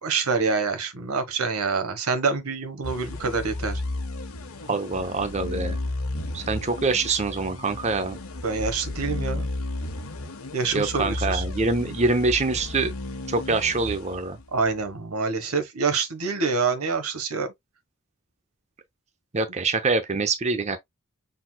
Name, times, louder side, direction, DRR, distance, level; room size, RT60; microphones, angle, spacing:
voice 1, 0.0-3.8 8.4-9.5 10.5-11.4 14.5-17.5, right 4 dB, 90° right, 1.3 m, -26 dB
sound 1, 2.8-14.7, left 2 dB, 75° left, 1.2 m, -33 dB
voice 2, 4.7-5.8 6.3-8.2 10.7-12.9 13.3-14.4 19.3-20.8, right 3 dB, 30° right, 0.7 m, -25 dB
5.8 x 4.1 x 2.2 m
head